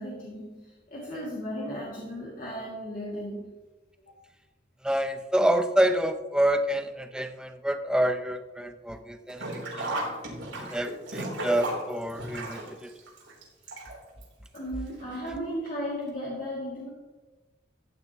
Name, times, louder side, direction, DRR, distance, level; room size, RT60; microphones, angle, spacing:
voice 1, 0.0-3.5 4.1-4.2 14.5-16.9, equal, 45° left, -6 dB, 2.4 m, -35 dB
voice 2, 4.8-10.0 10.6-12.9, right 1 dB, 5° right, 8 dB, 0.6 m, -27 dB
Sink (filling or washing), 9.3-14.2 14.5-14.6 15.7-15.8 16.1-16.2, right 1 dB, 75° right, 3.5 m, -35 dB
14.5 x 10.0 x 3.0 m, 1.2 s
head